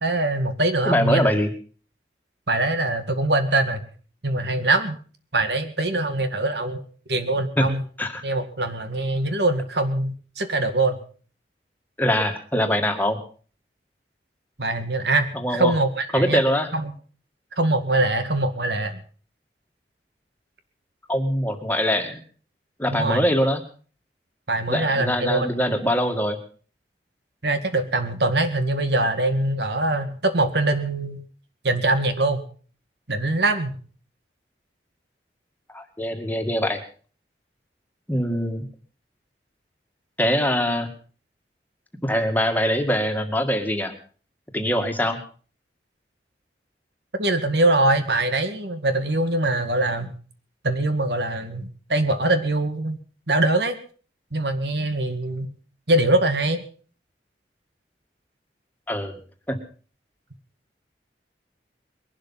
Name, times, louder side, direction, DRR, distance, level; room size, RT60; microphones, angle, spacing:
voice 1, 0.0-1.3 2.5-3.9 4.2-5.0 5.3-7.8 8.2-11.0 14.6-16.4 16.7-16.9 17.6-19.0 22.9-23.2 24.5-25.5 27.4-31.2 31.6-32.4 33.1-33.8 47.2-50.2 50.6-53.0 53.3-53.8 54.3-55.5 55.9-56.6, right 2 dB, 75° right, 9 dB, 2.0 m, -23 dB
voice 2, 0.9-1.5 7.6-7.7 8.0-8.2 12.0-13.2 15.3-15.7 16.1-16.7 21.1-22.2 22.8-23.6 24.7-26.4 35.7-36.8 38.1-38.6 40.2-40.9 42.0-43.9 44.5-45.2 58.9-59.2 59.5-59.6, equal, 10° left, 5 dB, 2.0 m, -23 dB
21.5 x 12.0 x 5.6 m, 0.42 s
head